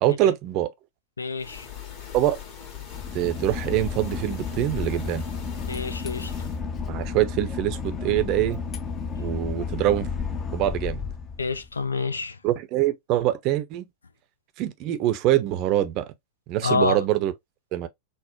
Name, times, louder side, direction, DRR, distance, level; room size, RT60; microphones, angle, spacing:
voice 1, 0.0-0.7 2.1-2.4 3.1-5.2 6.9-8.6 9.2-10.1 10.5-11.0 12.4-13.9 14.6-16.1 16.5-17.3 17.7-17.9, right 14 dB, 40° right, 0.5 m, -24 dB
voice 2, 1.2-1.7 5.7-6.3 11.4-12.4 16.6-17.0, left 4 dB, 75° left, 0.4 m, -27 dB
sound 1, 1.4-6.6, left 9 dB, 40° left, 1.6 m, -41 dB
Boat Water vehicle / Engine, 2.9-11.8, left 5 dB, 25° left, 0.6 m, -32 dB
3.9 x 2.0 x 3.1 m
figure-of-eight pair, 90°, 0 cm